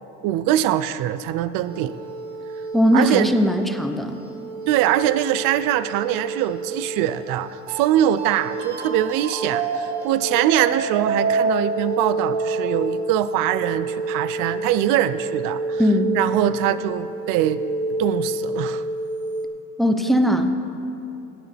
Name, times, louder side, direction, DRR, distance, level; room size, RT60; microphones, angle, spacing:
voice 1, 0.2-2.0 2.9-3.3 4.7-15.8 16.1-17.6 18.0-18.8, right 12 dB, 65° right, 14 dB, 0.5 m, -22 dB
sound 1, 1.6-19.5, right 2 dB, 85° right, 1.5 m, -28 dB
voice 2, 2.7-4.2 15.8-16.1 19.8-20.6, equal, ahead, 6 dB, 0.6 m, -19 dB
17.0 x 10.0 x 3.4 m, 3.0 s
cardioid pair, 125°, 35 cm